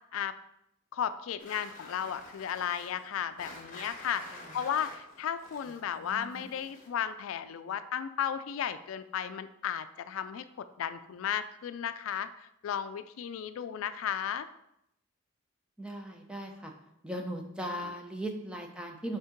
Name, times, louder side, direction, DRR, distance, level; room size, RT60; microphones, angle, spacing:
voice 1, 0.9-10.4 10.8-14.5 17.7-17.9, left 8 dB, 75° left, 12 dB, 0.3 m, -34 dB
sound 1, 1.4-7.1, left 2 dB, 40° left, 1.2 m, -49 dB
voice 2, 5.8-6.5 15.8-16.7 17.0-19.2, right 1 dB, 5° right, 2 dB, 0.6 m, -38 dB
5.4 x 3.6 x 5.1 m, 0.80 s
head